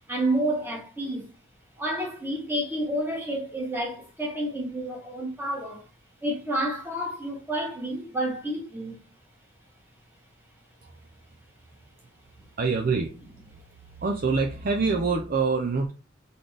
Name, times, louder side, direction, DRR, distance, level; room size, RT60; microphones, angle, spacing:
voice 1, 0.1-1.3 1.8-5.9 6.2-9.0, right 1 dB, 10° right, 1.6 m, -29 dB
voice 2, 12.6-13.1 13.5-13.6 14.0-15.9, right 4 dB, 45° right, 0.5 m, -25 dB
4.0 x 3.9 x 3.3 m
head